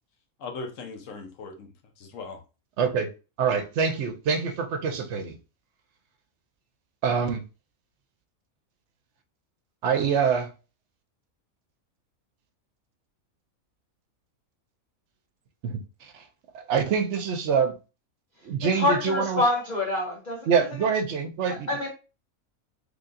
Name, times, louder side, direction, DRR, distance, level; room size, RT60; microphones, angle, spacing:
voice 1, 0.4-2.4, left 4 dB, 70° left, 1.1 m, -39 dB
voice 2, 2.8-3.1 3.4-5.4 7.0-7.4 9.8-10.5 15.6-16.3 16.5-17.7 18.4-19.4 20.5-21.8, right 6 dB, 65° right, 0.8 m, -25 dB
voice 3, 18.7-20.5 21.5-21.9, left 2 dB, 40° left, 0.8 m, -26 dB
3.9 x 3.3 x 2.5 m
omnidirectional pair, 1.5 m